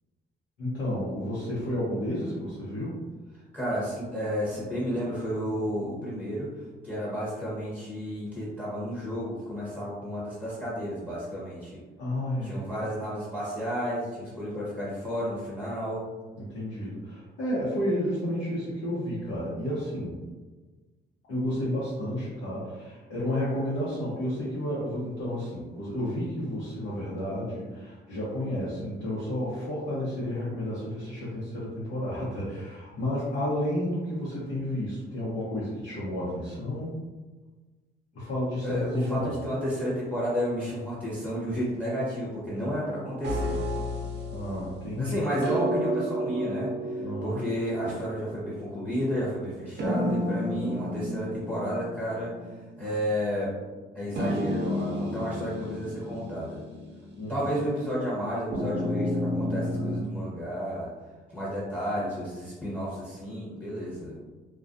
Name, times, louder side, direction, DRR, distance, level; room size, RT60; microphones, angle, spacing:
voice 1, 0.6-2.9 12.0-12.7 16.4-20.2 21.3-36.9 38.1-39.4 44.3-45.2 47.0-47.4 52.8-52.9 57.2-57.5, left 1 dB, 80° left, -9 dB, 0.9 m, -31 dB
voice 2, 3.5-6.5 6.8-11.8 12.4-16.0 38.6-43.6 45.0-52.3 52.8-53.5 53.9-56.6 57.3-60.9 61.3-64.2, equal, 10° left, -8 dB, 0.9 m, -32 dB
sound 1, 43.2-44.8 45.4-48.7 49.8-52.6 52.9-53.0 54.2-57.3 58.5-60.0, equal, 60° right, 0.6 m, -31 dB
2.3 x 2.2 x 2.5 m, 1.3 s
cardioid pair, 90°, 20 cm